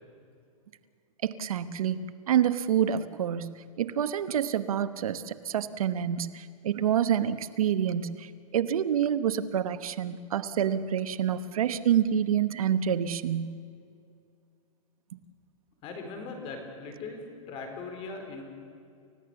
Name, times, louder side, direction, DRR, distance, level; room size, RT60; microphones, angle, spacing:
voice 1, 1.2-13.6, right 9 dB, 80° right, 12 dB, 1.1 m, -27 dB
voice 2, 15.8-18.4, left 4 dB, 30° left, 4 dB, 4.4 m, -39 dB
30.0 x 15.5 x 7.1 m, 2.4 s
hypercardioid pair, 150°, 18 cm